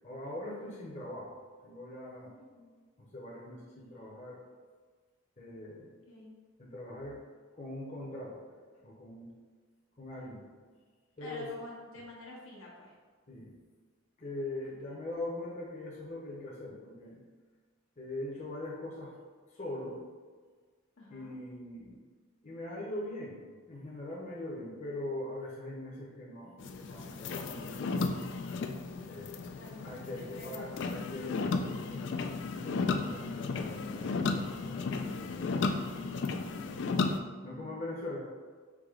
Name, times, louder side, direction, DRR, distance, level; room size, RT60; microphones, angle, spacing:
voice 1, 0.0-1.4 1.6-2.4 3.0-4.4 5.4-5.9 6.6-7.2 7.5-8.4 8.8-9.3 10.0-10.5 11.2-11.5 13.3-13.6 14.2-17.2 18.0-19.2 19.5-20.0 21.1-22.0 22.4-28.1 29.1-29.5 29.8-32.2 32.5-36.4 37.4-38.2, left 1 dB, 35° left, -5 dB, 0.8 m, -42 dB
voice 2, 2.2-2.7 6.1-6.3 11.2-12.9 21.0-21.3 29.5-30.9 37.4-37.8, left 1 dB, 80° left, -4 dB, 1.2 m, -49 dB
windshield wipers, 26.6-37.2, left 4 dB, 55° left, 0.3 m, -34 dB
4.8 x 2.8 x 3.7 m, 1.5 s
head